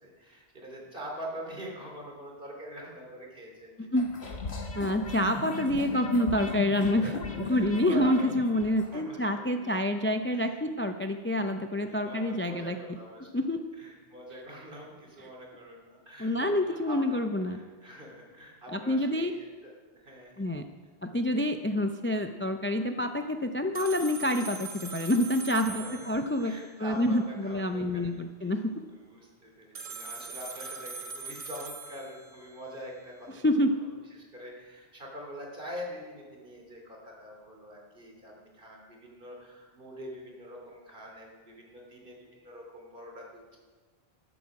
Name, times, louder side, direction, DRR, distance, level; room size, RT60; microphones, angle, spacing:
voice 1, 0.0-4.0 5.1-5.5 6.8-7.1 7.4-9.7 10.3-10.6 11.9-20.5 25.6-28.3 28.9-33.5 33.8-43.6, equal, 60° right, -1 dB, 3.1 m, -45 dB
sound 1, 4.0-8.9, left 5 dB, 85° left, 1.7 m, -36 dB
voice 2, 4.8-7.1 7.5-12.8 13.3-13.6 16.2-17.6 18.7-19.3 20.4-20.6 21.0-26.5 26.8-28.7 33.4-33.8, left 1 dB, 15° left, 7 dB, 0.4 m, -27 dB
sound 2, 23.7-26.7 29.7-32.6, right 4 dB, 35° right, 0.8 m, -42 dB
13.5 x 12.0 x 4.8 m, 1.4 s
omnidirectional pair, 1.0 m